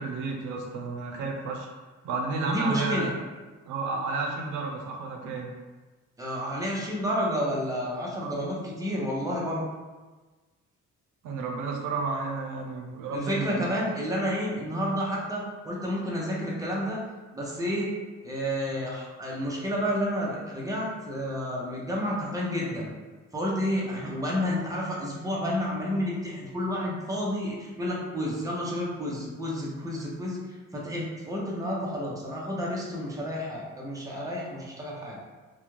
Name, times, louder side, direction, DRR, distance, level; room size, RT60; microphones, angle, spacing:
voice 1, 0.0-1.7 2.0-3.1 3.7-5.5 8.2-8.5 11.2-13.7 24.0-24.2, right 4 dB, 85° right, 1 dB, 0.5 m, -32 dB
voice 2, 2.5-3.1 6.2-9.6 13.1-17.0 17.3-17.9 18.2-22.9 23.3-30.4 30.7-35.2, equal, 10° right, -4 dB, 0.7 m, -30 dB
2.4 x 2.2 x 3.1 m, 1.3 s
cardioid pair, 90°, 30 cm